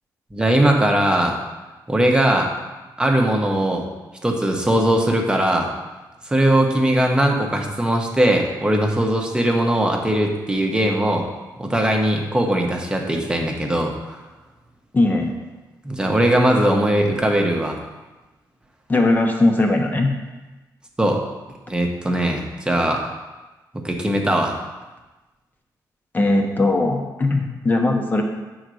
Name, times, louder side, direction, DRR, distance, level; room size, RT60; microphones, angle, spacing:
voice 1, 0.3-1.4 1.9-2.5 3.0-3.9 4.2-5.7 6.3-11.2 11.6-14.2 15.8-17.8 21.0-21.2 21.7-23.0 23.7-24.6, right 1 dB, 10° right, 1 dB, 1.0 m, -20 dB
voice 2, 14.9-15.3 18.9-20.1 26.1-28.2, left 2 dB, 25° left, 3 dB, 1.0 m, -19 dB
8.0 x 4.0 x 6.2 m, 1.1 s
cardioid pair, 125°, 7 cm